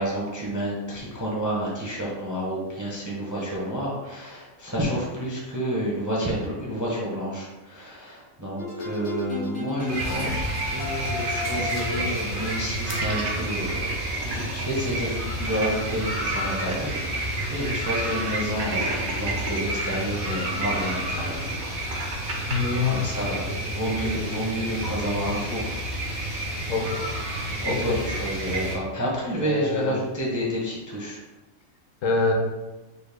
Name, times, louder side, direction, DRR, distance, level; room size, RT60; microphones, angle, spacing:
voice 1, 0.0-13.9 14.2-21.5 21.9-22.6 22.9-26.0 27.6-31.2, equal, 20° right, -4 dB, 0.5 m, -30 dB
sound 1, 8.6-13.9, left 2 dB, 90° left, 1.3 m, -35 dB
sound 2, 9.9-28.8, right 1 dB, 85° right, 1.7 m, -30 dB
sound 3, 12.9-14.6 15.0-15.1 15.4-17.1 17.4-17.5 18.0-19.6 20.3-22.6, right 3 dB, 60° right, 0.9 m, -36 dB
voice 2, 22.5-23.0 23.5-23.6 23.9-24.0 26.7-27.0 27.7-28.0 29.4-29.9 32.0-32.3, left 4 dB, 70° left, 1 dB, 1.0 m, -25 dB
5.1 x 2.1 x 3.3 m, 1.1 s
omnidirectional pair, 1.4 m